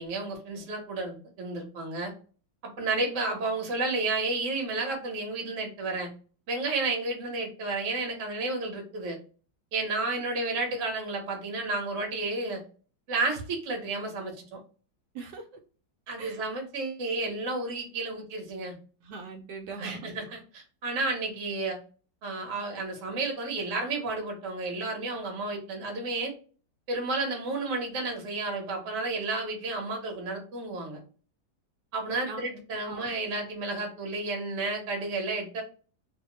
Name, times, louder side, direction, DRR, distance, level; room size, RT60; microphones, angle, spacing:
voice 1, 0.0-2.1 2.8-6.1 6.5-9.2 9.7-12.6 13.1-14.6 16.1-18.7 19.8-21.8 22.2-26.3 26.9-31.0 31.9-35.6, right 3 dB, 50° right, 1 dB, 1.1 m, -31 dB
voice 2, 15.1-15.5 16.2-16.4 19.0-20.4 32.3-32.4 32.8-33.1, right 4 dB, 80° right, 3 dB, 1.2 m, -41 dB
2.9 x 2.1 x 2.8 m, 0.38 s
omnidirectional pair, 1.9 m